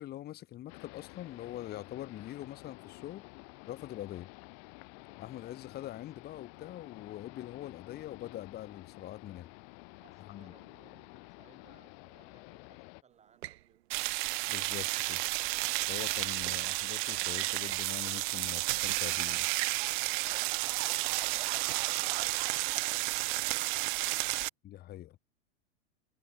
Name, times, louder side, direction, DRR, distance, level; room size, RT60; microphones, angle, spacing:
voice 1, 0.0-3.2 3.7-4.3 5.2-9.5 10.2-10.5 14.5-15.2 15.9-19.5 24.6-25.2, left 13 dB, 30° left, 1.5 m, -43 dB
sound 1, 0.7-13.0, left 40 dB or more, 50° left, 1.2 m, -51 dB
voice 2, 9.9-13.9, right 7 dB, 20° right, 4.7 m, -65 dB
sound 2, 13.4-13.7 15.9-16.7 17.3-17.9 18.3-18.4 18.9-19.1 19.5-22.8, right 16 dB, 80° right, 0.7 m, -44 dB
sound 3, 13.9-24.5, right 27 dB, 50° right, 0.5 m, -32 dB
supercardioid pair, 130°, 32 cm